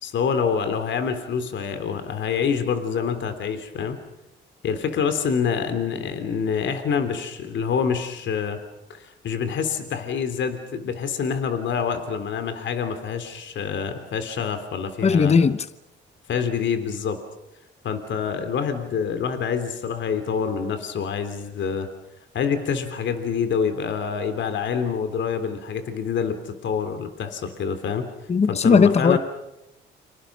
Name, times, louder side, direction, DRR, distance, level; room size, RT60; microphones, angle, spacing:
voice 1, 0.0-4.0 4.6-8.6 8.9-15.4 16.3-17.2 17.8-21.9 22.3-28.1 28.5-29.2, left 6 dB, 70° left, 3.3 m, -26 dB
voice 2, 15.0-15.7 28.3-29.2, left 5 dB, 35° left, 1.0 m, -17 dB
30.0 x 27.0 x 6.2 m
cardioid pair, 90°, 20 cm